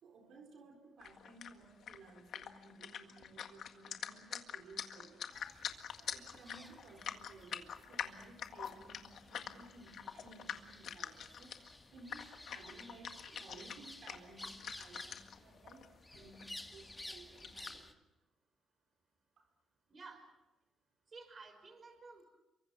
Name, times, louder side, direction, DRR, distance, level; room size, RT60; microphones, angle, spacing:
voice 1, 0.0-5.3 6.0-15.8 16.1-18.0 19.4-19.5, right 3 dB, 70° right, 3 dB, 4.1 m, -57 dB
sound 1, 1.0-15.4 15.7-15.9 16.1-17.0 17.4-17.8, left 8 dB, 65° left, 1.8 m, -45 dB
sound 2, 5.3-17.9, left 1 dB, 10° left, 2.1 m, -54 dB
voice 2, 19.9-20.2 21.1-22.2, right 4 dB, 35° right, 7 dB, 5.4 m, -53 dB
27.5 x 24.0 x 6.1 m, 0.99 s
cardioid pair, 90°, 0 cm